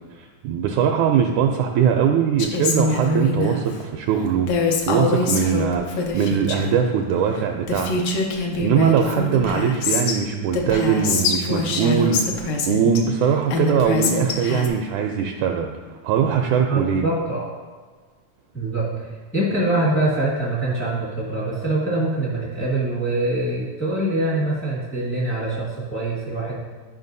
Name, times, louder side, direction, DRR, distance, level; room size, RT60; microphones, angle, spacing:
voice 1, 0.2-8.0 8.3-17.0, right 7 dB, 80° right, 2 dB, 1.8 m, -21 dB
Female speech woman speaking, 2.4-3.6 4.5-6.8 7.4-7.5 7.7-10.2 10.5-13.0 13.5-14.7, left 3 dB, 75° left, 1.5 m, -24 dB
voice 2, 16.7-17.5 18.5-26.6, right 2 dB, 15° left, -7 dB, 0.4 m, -24 dB
11.5 x 5.5 x 2.6 m, 1.4 s
omnidirectional pair, 3.8 m